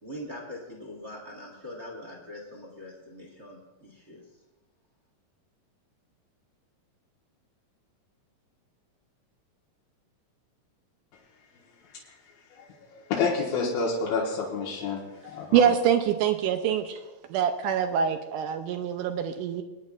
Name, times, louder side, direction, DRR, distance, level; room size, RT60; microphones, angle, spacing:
voice 1, 0.0-4.3, left 1 dB, 30° right, -3 dB, 1.4 m, -42 dB
voice 2, 12.9-15.6, left 4 dB, 90° left, -4 dB, 3.1 m, -29 dB
voice 3, 15.5-17.0 17.3-19.6, right 8 dB, 80° right, 7 dB, 2.0 m, -25 dB
25.0 x 9.8 x 2.4 m, 1.1 s
omnidirectional pair, 4.0 m